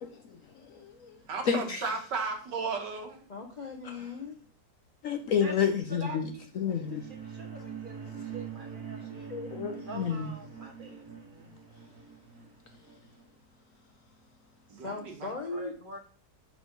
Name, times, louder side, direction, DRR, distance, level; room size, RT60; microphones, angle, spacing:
voice 1, 0.0-1.2 1.4-1.9 3.8-3.9 5.0-6.3 6.6-7.0 9.3-10.3, left 7 dB, 60° left, 0.9 m, -30 dB
voice 2, 1.3-3.2 14.7-15.3, right 4 dB, 80° right, 1.9 m, -35 dB
voice 3, 3.3-4.4 14.7-15.7, left 3 dB, 45° left, 0.6 m, -38 dB
voice 4, 5.9-6.5 6.7-9.3 9.9-11.5 15.5-16.0, right 2 dB, 35° right, 1.1 m, -45 dB
sound 1, 6.6-13.3, right 7 dB, 60° right, 2.1 m, -44 dB
9.0 x 3.7 x 5.2 m
omnidirectional pair, 1.9 m